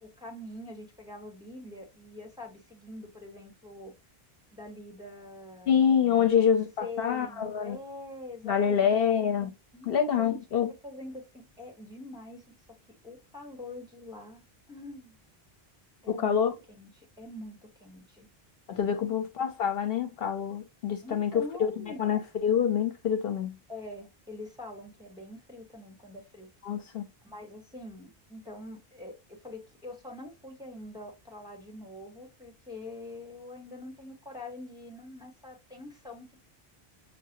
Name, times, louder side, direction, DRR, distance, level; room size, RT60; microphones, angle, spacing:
voice 1, 0.0-3.9 4.5-5.8 6.2-6.5 6.8-9.1 9.7-10.4 10.8-12.5 13.0-15.2 16.0-16.4 16.7-18.3 21.0-22.0 23.7-26.5 27.2-36.4, left 2 dB, 5° right, 1.2 m, -44 dB
voice 2, 5.7-7.8 8.4-9.5 9.8-10.7 16.1-16.5 18.7-23.6 26.6-27.0, left 8 dB, 70° left, 0.9 m, -26 dB
6.5 x 2.2 x 2.9 m
omnidirectional pair, 1.0 m